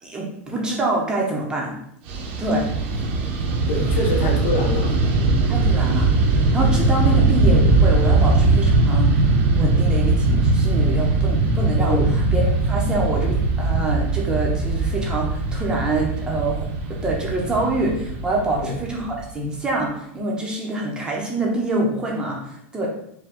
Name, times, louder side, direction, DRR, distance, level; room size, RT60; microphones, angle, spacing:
voice 1, 0.0-1.8 2.4-2.7 5.5-9.1 9.6-22.9, right 2 dB, 10° right, -2 dB, 0.8 m, -26 dB
Fixed-wing aircraft airplane, 2.0-19.5, right 3 dB, 55° right, 0.8 m, -20 dB
voice 2, 3.7-5.0 11.9-12.2 18.6-18.8, left 2 dB, 60° left, 1 dB, 1.0 m, -25 dB
4.7 x 2.2 x 3.7 m, 0.71 s
supercardioid pair, 150°, 7 cm